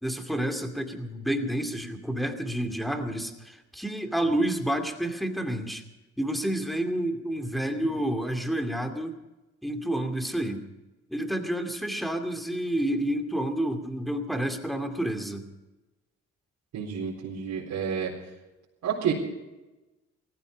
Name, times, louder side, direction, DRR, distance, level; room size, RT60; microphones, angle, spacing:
voice 1, 0.0-5.8 6.2-9.1 9.6-10.6 11.1-15.4, right 1 dB, ahead, 5 dB, 2.4 m, -29 dB
voice 2, 16.7-18.1 18.8-19.1, right 8 dB, 75° right, -6 dB, 4.2 m, -29 dB
17.5 x 15.5 x 5.2 m, 1.0 s
cardioid pair, 90°, 30 cm